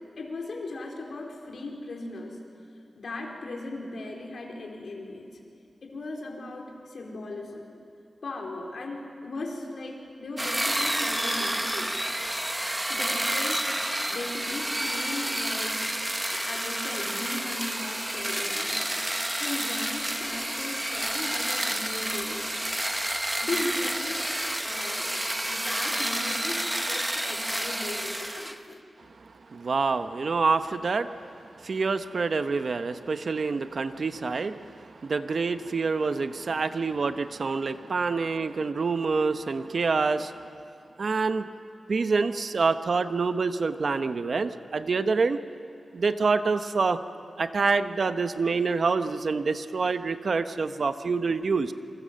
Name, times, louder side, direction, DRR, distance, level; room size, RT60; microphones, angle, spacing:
voice 1, 0.2-2.4 3.0-5.3 5.8-7.7 8.2-11.9 12.9-15.9 16.3-18.9 19.4-22.6 23.4-24.2 24.6-25.1 25.5-28.8, left 2 dB, 70° left, 0 dB, 4.4 m, -37 dB
sound 1, 10.4-28.6, right 1 dB, 10° right, 1.0 m, -30 dB
voice 2, 29.5-31.1 31.6-40.5 41.0-41.5 41.9-45.4 45.9-47.0 47.4-51.7, right 4 dB, 60° right, 9 dB, 1.0 m, -26 dB
28.0 x 25.0 x 7.7 m, 2.4 s
wide cardioid pair, 110°, 0 cm